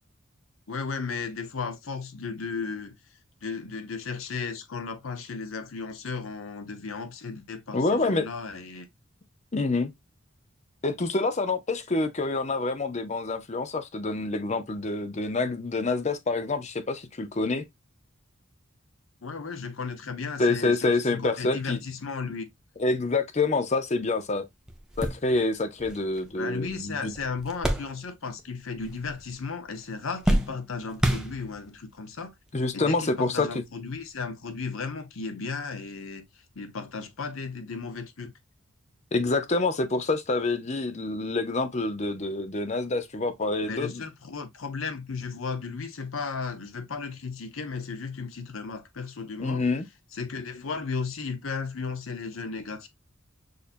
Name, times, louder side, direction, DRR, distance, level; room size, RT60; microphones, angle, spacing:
voice 1, 0.7-2.9 3.4-8.9 19.2-22.5 26.4-32.3 32.7-36.3 36.5-38.3 43.7-49.6 50.1-52.9, left 4 dB, 75° left, 0.8 m, -35 dB
voice 2, 7.7-8.3 9.5-9.9 10.8-17.7 20.4-21.8 22.8-24.4 25.0-27.1 32.5-33.5 39.1-44.0 49.4-49.8, left 3 dB, 35° left, 0.6 m, -27 dB
sound 1, 24.2-24.3 24.7-28.5 28.7-29.4 29.7-31.8 32.6-32.7 34.0-34.1, right 1 dB, 5° right, 0.7 m, -30 dB
6.5 x 2.7 x 2.5 m
head